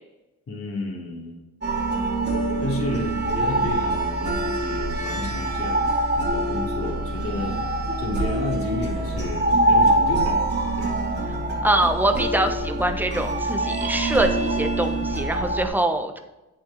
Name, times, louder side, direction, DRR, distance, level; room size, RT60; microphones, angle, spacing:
voice 1, 0.5-1.4 2.6-5.9 6.2-10.5 10.8-11.0 11.6-11.7, left 2 dB, 45° left, -2 dB, 3.1 m, -31 dB
sound 1, 1.6-15.7, right 1 dB, 35° right, 2.2 m, -24 dB
voice 2, 11.6-16.2, right 1 dB, 5° right, 5 dB, 1.1 m, -24 dB
8.6 x 7.3 x 4.2 m, 1.0 s
cardioid pair, 90°, 30 cm